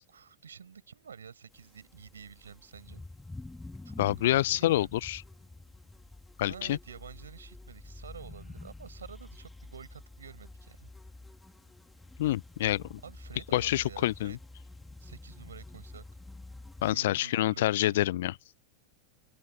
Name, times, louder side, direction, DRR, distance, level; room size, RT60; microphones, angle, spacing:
voice 1, 0.1-3.0 3.8-3.9 4.2-5.0 6.5-10.9 13.0-14.4 15.0-16.0 16.8-18.0, right 7 dB, 75° right, 6.6 m, -49 dB
sound 1, 1.5-16.9, left 2 dB, 5° left, 2.8 m, -48 dB
voice 2, 4.0-5.2 6.4-6.8 12.2-13.0 13.5-14.4 16.8-18.3, left 15 dB, 60° left, 0.6 m, -27 dB
open air
figure-of-eight pair, 90°, 0 cm